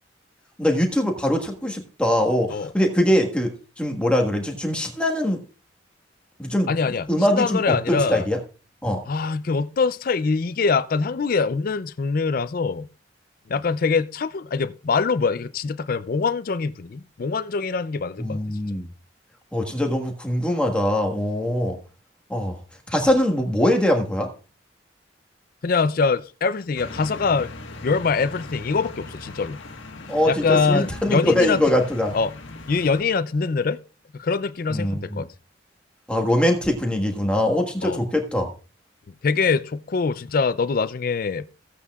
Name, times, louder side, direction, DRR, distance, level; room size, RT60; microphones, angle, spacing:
voice 1, 0.6-5.4 6.4-6.7 7.1-8.4 8.8-9.0 18.2-18.9 19.5-21.8 22.3-22.5 22.9-24.3 30.1-32.1 34.7-35.2 36.1-38.5, left 1 dB, 5° left, 1.4 m, -22 dB
voice 2, 6.7-8.3 9.1-12.9 13.5-18.4 25.6-27.5 27.8-29.6 30.2-31.6 32.1-32.3 32.7-33.8 34.1-35.3 37.8-38.0 39.2-41.5, left 4 dB, 50° left, 0.4 m, -23 dB
sound 1, 26.7-33.0, left 2 dB, 90° left, 1.4 m, -39 dB
16.0 x 8.3 x 2.4 m
head